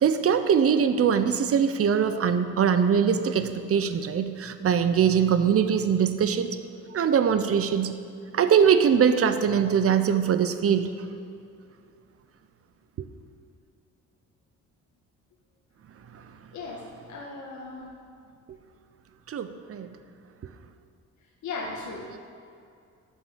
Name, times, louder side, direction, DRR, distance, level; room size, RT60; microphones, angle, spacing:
voice 1, 0.0-6.6 6.9-8.0 8.3-10.9 19.3-19.9, right 7 dB, 50° right, 10 dB, 0.9 m, -22 dB
voice 2, 16.5-17.9 21.4-22.2, left 3 dB, 70° left, -3 dB, 1.7 m, -37 dB
12.0 x 6.9 x 7.4 m, 2.4 s
cardioid pair, 90°, 30 cm